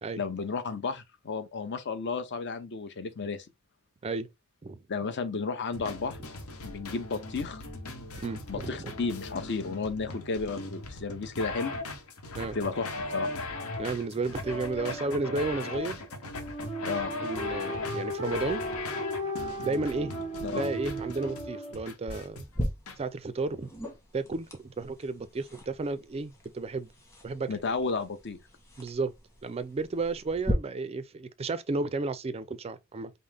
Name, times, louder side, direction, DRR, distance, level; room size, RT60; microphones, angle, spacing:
voice 1, 0.2-3.5 4.9-6.2 6.6-7.6 8.5-11.7 12.5-13.3 16.8-17.1 20.4-20.6 27.5-28.4, left 4 dB, 55° left, 0.7 m, -33 dB
sound 1, 5.7-23.0, left 2 dB, 85° left, 0.9 m, -39 dB
voice 2, 8.2-8.9 12.4-12.6 13.8-16.0 17.2-18.6 19.6-20.1 20.5-22.5 23.0-23.7 24.1-26.9 27.2-27.5 28.8-29.1 29.4-33.1, right 3 dB, 30° right, 0.4 m, -32 dB
sound 2, 14.4-21.7, equal, 30° left, 1.6 m, -37 dB
sound 3, 22.1-30.5, equal, 15° left, 1.2 m, -40 dB
5.4 x 2.0 x 3.4 m
head